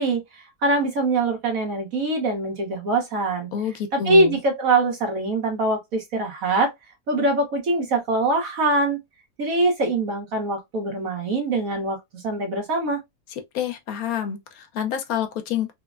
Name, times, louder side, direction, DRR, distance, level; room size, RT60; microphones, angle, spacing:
voice 1, 0.0-3.5 3.9-6.7 7.1-9.0 9.4-13.0, right 2 dB, 65° right, 1.4 m, -23 dB
voice 2, 3.5-4.4 13.5-15.7, left 9 dB, 75° left, 1.1 m, -28 dB
3.2 x 2.1 x 2.4 m
omnidirectional pair, 1.6 m